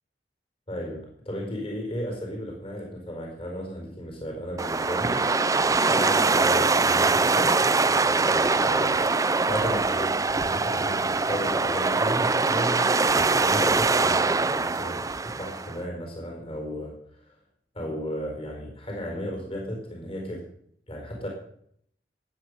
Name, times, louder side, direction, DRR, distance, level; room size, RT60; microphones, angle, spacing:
voice 1, 0.7-5.2 5.9-9.0 9.5-12.9 13.1-17.4 17.7-20.4 20.9-21.3, equal, 30° left, 1 dB, 4.5 m, -34 dB
sound 1, 4.6-15.8, right 3 dB, 20° right, 0.5 m, -23 dB
16.5 x 9.4 x 6.7 m, 0.67 s
head